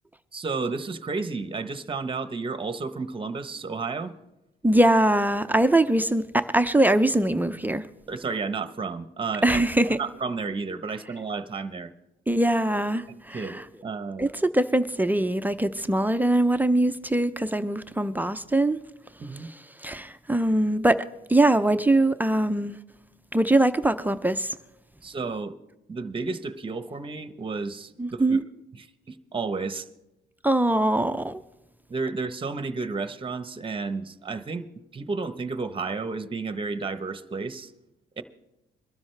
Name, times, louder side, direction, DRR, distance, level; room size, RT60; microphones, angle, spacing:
voice 1, 0.3-4.1 8.1-11.9 13.3-14.3 19.2-19.5 25.0-25.5 25.9-28.4 28.8-29.9 31.9-34.7 34.9-37.7 38.2-38.3, right 4 dB, 25° right, 1.0 m, -32 dB
voice 2, 4.6-7.8 9.4-10.0 12.3-13.6 14.2-18.8 19.8-21.0 21.3-22.8 23.3-24.5 28.0-28.4 30.4-31.4, right 1 dB, 10° right, 0.6 m, -22 dB
22.5 x 12.5 x 3.3 m
cardioid pair, 90°, 20 cm